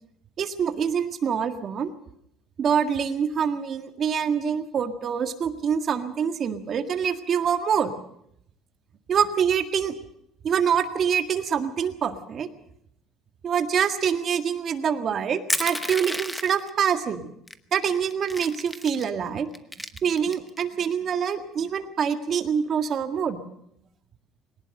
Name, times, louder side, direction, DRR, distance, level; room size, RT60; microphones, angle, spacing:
voice 1, 0.4-1.9 2.6-7.9 9.1-10.0 10.4-12.5 13.4-17.3 17.7-19.5 20.0-23.4, right 7 dB, 35° right, 8 dB, 1.9 m, -25 dB
Crushing, 15.5-16.7 17.5-17.6 17.9-19.1 19.5-20.6, left 1 dB, 5° left, 1.0 m, -31 dB
22.0 x 19.0 x 6.6 m, 0.73 s
cardioid pair, 160°, 0 cm